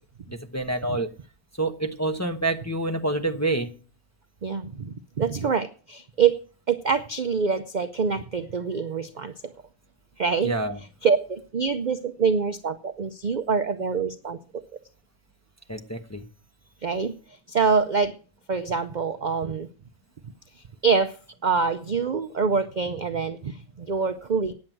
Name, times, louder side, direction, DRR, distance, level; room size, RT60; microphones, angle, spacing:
voice 1, 0.3-1.1 1.6-3.8 10.4-10.8 15.7-16.2, right 2 dB, 15° left, 3 dB, 0.8 m, -27 dB
voice 2, 4.4-6.4 6.7-9.3 10.2-10.6 11.0-14.6 16.8-18.1 18.5-19.7 20.8-21.2 21.4-24.5, right 5 dB, 50° right, 9 dB, 0.6 m, -25 dB
9.6 x 7.6 x 9.0 m, 0.40 s
omnidirectional pair, 1.5 m